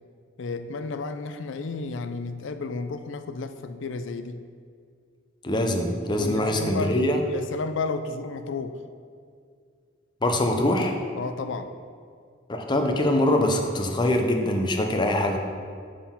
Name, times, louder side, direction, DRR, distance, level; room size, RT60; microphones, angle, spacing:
voice 1, 0.4-4.4 6.2-7.0 7.3-8.8 11.2-11.7, left 3 dB, 75° left, 9 dB, 0.4 m, -32 dB
voice 2, 5.4-7.2 10.2-10.9 12.5-15.4, left 1 dB, 25° left, 3 dB, 0.5 m, -23 dB
6.6 x 3.7 x 5.6 m, 2.2 s
head